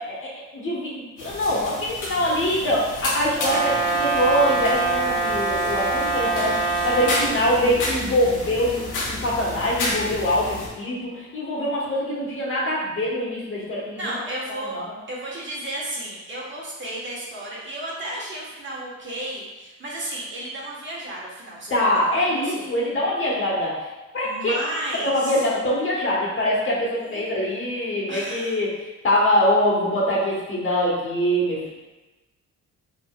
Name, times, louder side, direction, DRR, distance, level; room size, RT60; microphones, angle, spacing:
voice 1, 0.5-14.1 14.7-14.8 21.7-23.9 24.1-24.6 25.0-28.7 29.0-31.7, equal, 45° left, -4 dB, 1.3 m, -23 dB
sound 1, 1.2-10.7, left 2 dB, 85° left, 1.0 m, -31 dB
Brass instrument, 3.3-7.3, right 3 dB, 15° left, 1.3 m, -24 dB
voice 2, 14.0-14.8 15.1-22.7 24.2-25.4 26.9-27.3 28.1-28.6, right 1 dB, 40° right, -5 dB, 1.3 m, -33 dB
4.6 x 3.3 x 2.3 m, 1.1 s
cardioid pair, 90°, 30 cm